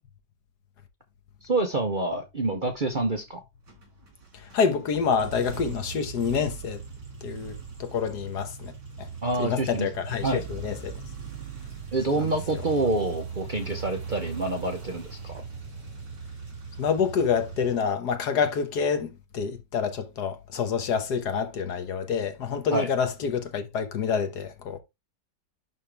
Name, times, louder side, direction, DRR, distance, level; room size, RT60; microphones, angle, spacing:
voice 1, 1.4-3.4 9.2-9.9 10.2-10.4 11.9-15.3 22.7-22.9, right 2 dB, 40° right, 0.8 m, -27 dB
sound 1, 3.7-17.8, right 6 dB, 75° right, 3.4 m, -39 dB
voice 2, 4.3-6.8 7.2-8.7 9.0-9.1 9.4-10.9 12.2-12.3 16.8-24.8, left 6 dB, 70° left, 1.6 m, -27 dB
11.0 x 3.7 x 3.4 m
omnidirectional pair, 1.9 m